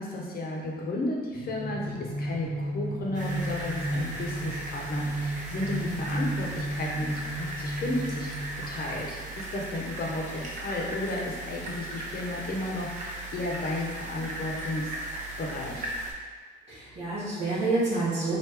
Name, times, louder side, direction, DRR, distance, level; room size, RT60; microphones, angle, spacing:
voice 1, 0.0-8.3 8.7-14.9 15.4-15.9, left 1 dB, 50° left, -2 dB, 0.8 m, -33 dB
sound 1, 1.3-9.2, right 1 dB, 15° right, 1.1 m, -34 dB
sound 2, 3.1-16.1, right 1 dB, 40° right, 0.8 m, -37 dB
voice 2, 16.7-18.4, right 2 dB, 65° right, -12 dB, 1.2 m, -29 dB
3.2 x 2.6 x 3.4 m, 1.5 s
cardioid pair, 90°, 20 cm